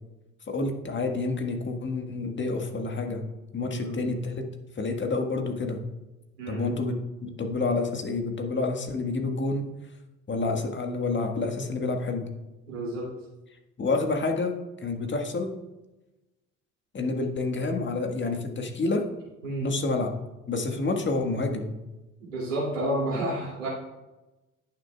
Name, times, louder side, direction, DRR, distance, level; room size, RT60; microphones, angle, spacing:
voice 1, 0.5-3.2 3.5-4.4 4.8-5.8 6.5-9.6 10.3-12.3 13.8-14.5 14.8-15.6 16.9-19.0 19.6-20.1 20.5-21.8, left 3 dB, 30° left, 4 dB, 1.5 m, -28 dB
voice 2, 3.7-4.0 6.4-6.6 12.7-13.1 19.4-19.7 22.2-23.7, right 1 dB, 90° right, -4 dB, 2.7 m, -30 dB
18.5 x 6.5 x 2.3 m, 1.0 s
hypercardioid pair, 55°, 37 cm